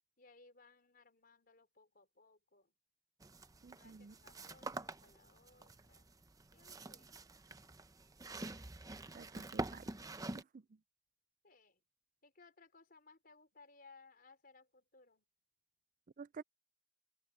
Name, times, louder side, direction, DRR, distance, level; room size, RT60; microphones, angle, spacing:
voice 1, 0.2-2.7 3.8-6.1 6.5-7.2 11.4-11.8 12.2-15.3, left 3 dB, 55° left, 4.2 m, -64 dB
sound 1, 3.2-10.4, right 2 dB, 20° right, 0.8 m, -47 dB
voice 2, 3.6-4.1 9.1-9.8 10.3-10.6 16.2-16.4, right 5 dB, 45° right, 0.4 m, -51 dB
open air
head